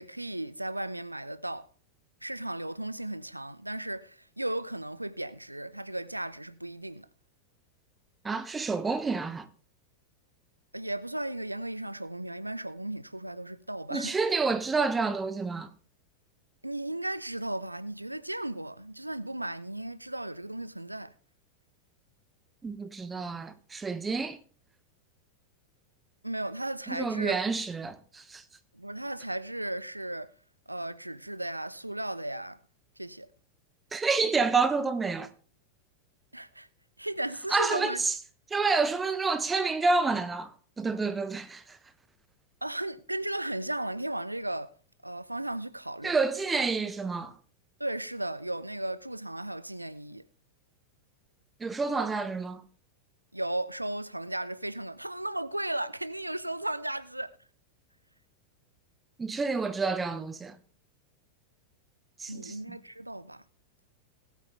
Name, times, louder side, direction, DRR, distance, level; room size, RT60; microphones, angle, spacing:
voice 1, 0.0-1.7 2.2-7.1 10.7-14.1 16.6-21.1 26.2-27.4 28.7-30.3 30.7-32.6 33.0-33.3 36.3-36.7 37.0-38.0 42.6-44.7 45.0-46.2 47.8-50.2 53.3-57.3 62.3-63.4, right 1 dB, 85° right, 0.6 m, -35 dB
voice 2, 8.2-9.5 13.9-15.7 22.6-24.4 26.9-28.4 33.9-35.3 37.5-38.1 38.5-41.8 46.0-47.3 51.6-52.6 59.2-60.6 62.2-62.8, right 4 dB, 15° right, 1.0 m, -29 dB
18.5 x 8.4 x 3.3 m
figure-of-eight pair, 90°, 0 cm